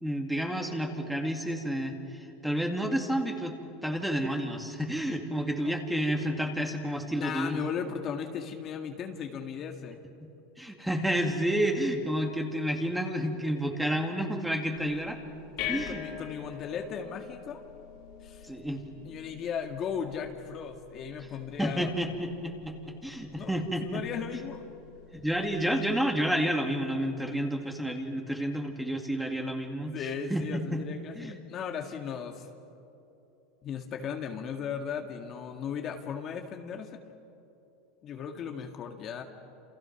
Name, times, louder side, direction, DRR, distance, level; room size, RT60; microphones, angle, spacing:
voice 1, 0.0-3.6 3.8-7.6 10.6-15.2 15.7-16.0 18.4-18.8 21.6-24.0 25.1-29.9 30.3-30.8 31.1-31.4, equal, 5° right, 3 dB, 2.4 m, -30 dB
voice 2, 7.1-10.0 15.6-17.6 18.2-18.5 19.0-21.9 23.3-23.5 23.8-24.6 29.8-32.5 33.6-37.0 38.0-39.2, left 7 dB, 35° left, 4 dB, 1.9 m, -36 dB
sound 1, 14.8-25.7, left 9 dB, 60° left, 3.3 m, -44 dB
29.0 x 28.5 x 6.0 m, 2.8 s
supercardioid pair, 135°, 0 cm